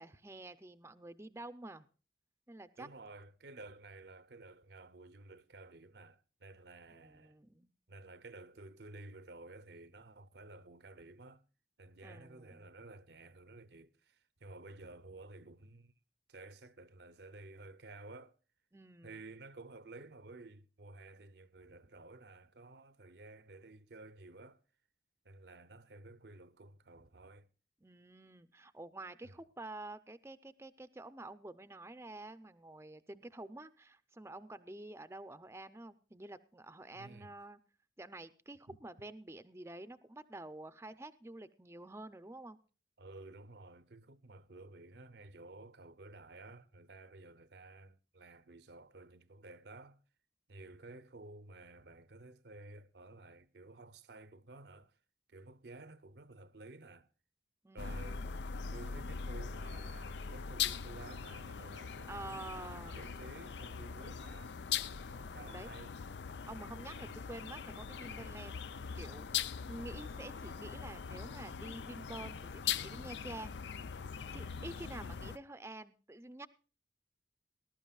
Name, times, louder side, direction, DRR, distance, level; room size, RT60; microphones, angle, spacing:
voice 1, 0.0-1.9 2.5-2.9 6.9-7.7 12.0-12.7 18.7-19.1 27.8-37.6 38.0-42.6 57.6-58.5 62.1-63.0 65.2-65.7 66.4-68.6 68.9-69.3 69.7-73.5 74.3-76.5, right 2 dB, 15° right, 0.6 m, -49 dB
voice 2, 2.8-7.4 7.9-11.4 11.8-15.9 16.3-18.3 19.0-24.6 25.2-27.5 29.2-29.4 36.9-37.4 38.7-38.8 43.0-50.0 50.5-55.0 55.3-57.1 57.7-64.6 65.1-65.9 67.0-67.2 74.3-74.8, right 2 dB, 75° right, 0.8 m, -53 dB
sound 1, 57.8-75.4, left 7 dB, 85° left, 0.5 m, -41 dB
19.5 x 12.0 x 2.4 m
head